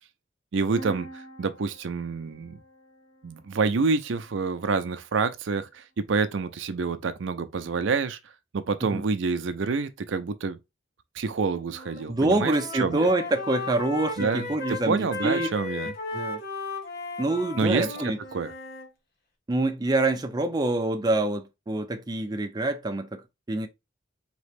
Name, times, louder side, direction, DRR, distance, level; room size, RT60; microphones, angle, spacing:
voice 1, 0.5-2.6 3.2-8.2 8.5-10.6 11.1-12.5 12.8-13.1 14.2-15.9 17.6-18.5, right 4 dB, 75° right, 0.5 m, -27 dB
sound 1, 0.7-4.5, right 3 dB, 70° left, 1.5 m, -46 dB
Wind instrument woodwind instrument, 11.6-12.0 12.3-18.9, left 3 dB, 55° left, 1.2 m, -36 dB
voice 2, 12.1-15.5 16.1-16.4 17.2-18.2 19.5-23.2 23.5-23.7, right 2 dB, 20° right, 0.4 m, -26 dB
4.2 x 2.9 x 3.3 m
head